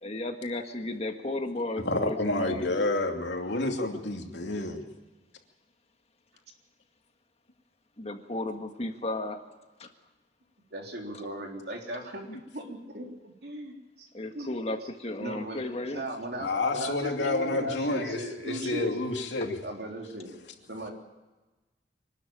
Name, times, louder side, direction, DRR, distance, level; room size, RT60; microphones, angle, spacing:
voice 1, 0.0-2.6 8.0-9.4 9.8-9.9 14.1-16.0 17.5-18.0, left 2 dB, 35° left, 5 dB, 1.7 m, -34 dB
voice 2, 1.8-4.8 12.3-12.4 16.4-19.6, left 2 dB, 80° left, 3 dB, 2.7 m, -29 dB
voice 3, 10.7-12.2 12.5-14.1 14.3-14.5 15.2-15.6 15.9-18.9 19.6-20.3 20.7-20.9, right 1 dB, 60° right, 1 dB, 3.8 m, -37 dB
24.5 x 12.5 x 8.9 m, 1.2 s
head